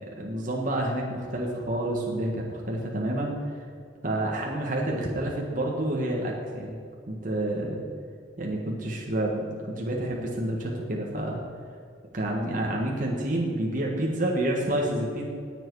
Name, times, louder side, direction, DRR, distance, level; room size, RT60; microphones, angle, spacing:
voice 1, 0.1-3.6 4.0-6.8 7.1-7.8 8.4-11.4 12.1-15.3, right 1 dB, 45° right, -2 dB, 1.6 m, -29 dB
19.0 x 7.7 x 4.8 m, 2.4 s
head